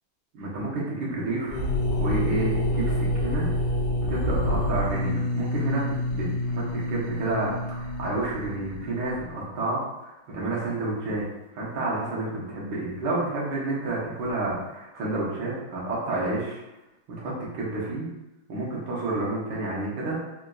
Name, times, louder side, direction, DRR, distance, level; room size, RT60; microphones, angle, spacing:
voice 1, 0.3-1.6 1.9-3.4 4.1-11.2 11.5-16.6 17.2-18.1 18.5-20.2, right 2 dB, 65° right, -5 dB, 1.4 m, -30 dB
sound 1, 1.5-9.2, left 1 dB, 80° left, 1.3 m, -27 dB
3.9 x 2.5 x 2.3 m, 0.97 s
omnidirectional pair, 2.2 m